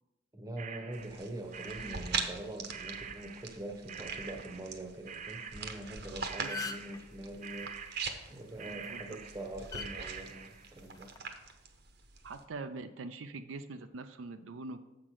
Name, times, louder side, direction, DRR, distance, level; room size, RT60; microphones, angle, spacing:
voice 1, 0.3-7.7 8.3-11.1, right 1 dB, 20° right, 4 dB, 1.0 m, -43 dB
sound 1, 0.6-3.6 3.9-4.8 5.1-6.0 6.2-10.7, right 6 dB, 40° right, 0.6 m, -46 dB
sound 2, 0.9-12.4, right 5 dB, 55° right, 0.9 m, -43 dB
sound 3, 5.9-6.1 6.3-7.0 8.6-8.9 9.7-9.9 10.9-11.2, left 4 dB, 20° left, 0.5 m, -39 dB
voice 2, 12.2-14.8, right 3 dB, 85° right, 8 dB, 0.5 m, -43 dB
7.6 x 5.8 x 4.8 m, 0.96 s
head